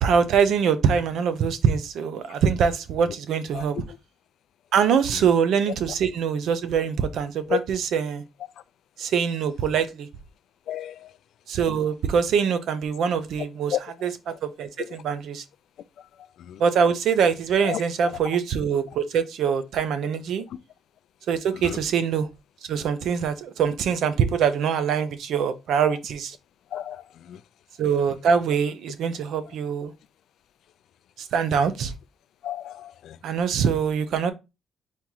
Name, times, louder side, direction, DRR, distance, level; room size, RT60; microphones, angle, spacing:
voice 1, 0.0-3.8 4.7-8.2 9.0-10.1 11.5-15.4 16.6-20.4 21.3-22.3 22.7-26.4 27.8-29.9 31.2-31.9 33.2-34.3, right 7 dB, 70° right, 0.6 m, -24 dB
voice 2, 26.7-27.0 27.3-27.4 32.4-33.2, left 12 dB, 70° left, 0.3 m, -30 dB
4.3 x 3.0 x 3.7 m
cardioid pair, 135°, 0 cm